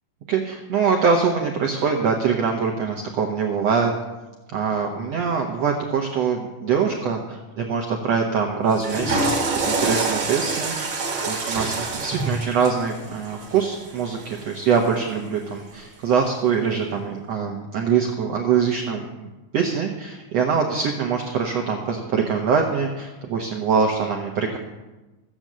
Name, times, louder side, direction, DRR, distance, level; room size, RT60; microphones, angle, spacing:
voice 1, 0.3-3.9 4.5-24.6, right 6 dB, 90° right, 1 dB, 1.4 m, -23 dB
Water / Toilet flush, 8.7-14.9, right 3 dB, 45° right, 1.6 m, -27 dB
15.0 x 8.0 x 7.5 m, 1.1 s
omnidirectional pair, 4.8 m